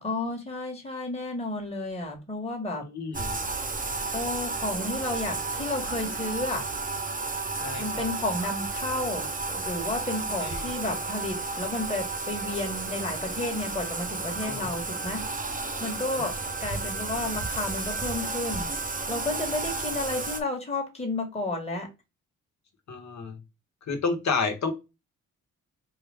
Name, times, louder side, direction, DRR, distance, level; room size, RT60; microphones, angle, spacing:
voice 1, 0.0-2.8 4.1-6.6 7.8-15.2 15.8-16.3 16.6-18.7 19.1-21.9, left 2 dB, 20° left, 1 dB, 1.3 m, -32 dB
voice 2, 2.8-3.4 7.6-8.0 8.4-8.5 10.4-10.7 14.4-14.8 20.1-20.2 22.9-23.4 23.9-24.7, left 4 dB, 60° left, 4 dB, 1.2 m, -31 dB
Bathtub (filling or washing), 3.1-20.4, right 3 dB, 25° right, 0.7 m, -32 dB
3.8 x 2.4 x 3.4 m, 0.26 s
cardioid pair, 70°, 31 cm